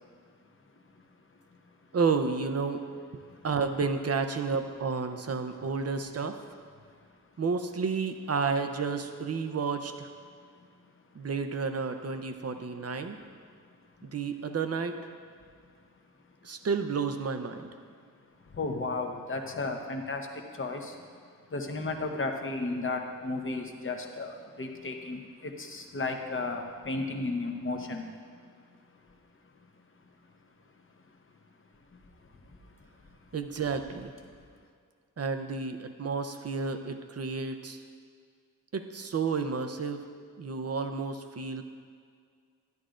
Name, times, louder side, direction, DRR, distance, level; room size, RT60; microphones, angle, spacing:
voice 1, 0.7-1.4 1.7-1.9 3.2-3.5 6.8-7.0 10.3-10.9 12.5-12.6 14.0-14.1 15.4-15.7 16.2-16.3 18.4-29.6 30.7-31.2 31.6-33.2, left 3 dB, 40° left, 3 dB, 0.9 m, -36 dB
voice 2, 1.9-2.8 3.4-6.4 7.4-10.1 11.2-13.2 14.0-15.0 16.4-17.7 33.3-34.1 35.2-37.8 38.7-40.0 40.4-41.6, right 5 dB, 45° right, 7 dB, 0.6 m, -31 dB
13.0 x 10.5 x 2.5 m, 2.1 s
wide cardioid pair, 130°, 33 cm